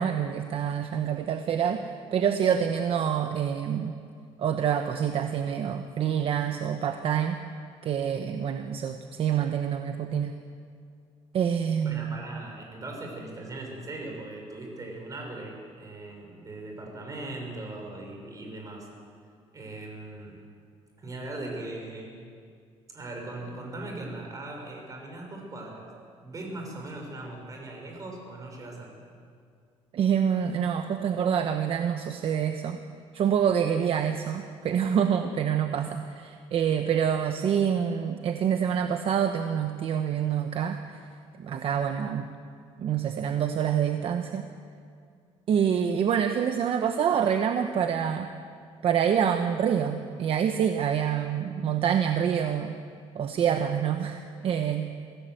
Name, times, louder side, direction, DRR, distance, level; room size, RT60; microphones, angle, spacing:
voice 1, 0.0-1.8 2.1-4.0 4.4-7.4 7.8-10.4 11.3-12.2 29.9-32.8 33.1-40.8 41.4-42.3 42.8-44.5 45.5-48.3 48.8-52.8 53.1-54.9, right 8 dB, 55° right, 7 dB, 1.1 m, -26 dB
voice 2, 11.8-18.9 19.5-20.4 21.0-22.1 22.9-25.9 26.2-29.0, right 2 dB, 30° right, 1 dB, 5.9 m, -39 dB
24.5 x 16.0 x 7.9 m, 2.3 s
cardioid pair, 125°, 12 cm